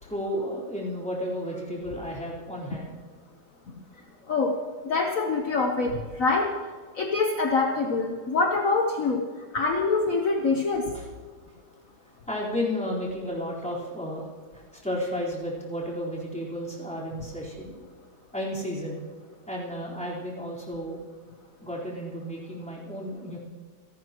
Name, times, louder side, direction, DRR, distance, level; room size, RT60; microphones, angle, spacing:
voice 1, 0.0-2.9 10.9-11.1 12.3-14.3 14.5-17.8 18.3-19.0 19.5-21.0 21.6-23.4, equal, 5° left, -6 dB, 4.1 m, -33 dB
voice 2, 4.8-6.5 6.9-9.2 9.5-10.8, left 3 dB, 55° left, 2 dB, 1.5 m, -25 dB
28.0 x 12.0 x 3.0 m, 1.6 s
omnidirectional pair, 1.8 m